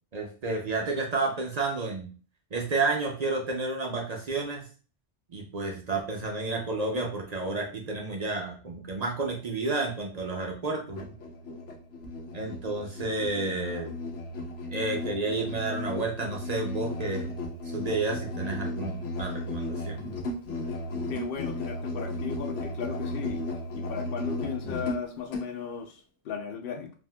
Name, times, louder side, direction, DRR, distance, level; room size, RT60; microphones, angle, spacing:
voice 1, 0.1-2.1 2.5-4.7 5.3-11.1 12.3-13.9 14.7-17.3 17.7-20.0, right 3 dB, 45° right, 1 dB, 0.6 m, -31 dB
Musical instrument, 10.9-25.5, left 1 dB, 80° left, 1.0 m, -35 dB
voice 2, 21.1-23.4 23.7-26.9, left 7 dB, 60° left, 5 dB, 0.7 m, -36 dB
3.5 x 2.5 x 2.2 m, 0.37 s
omnidirectional pair, 1.2 m